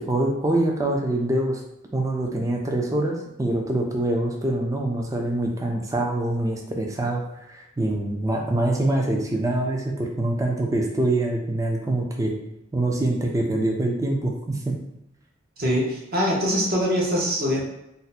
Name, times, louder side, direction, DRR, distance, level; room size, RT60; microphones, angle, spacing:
voice 1, 0.0-1.6 1.9-12.4 12.7-14.8, right 1 dB, 15° right, 1 dB, 0.4 m, -25 dB
voice 2, 15.6-17.6, equal, 50° right, -3 dB, 0.9 m, -23 dB
2.6 x 2.1 x 4.0 m, 0.84 s
head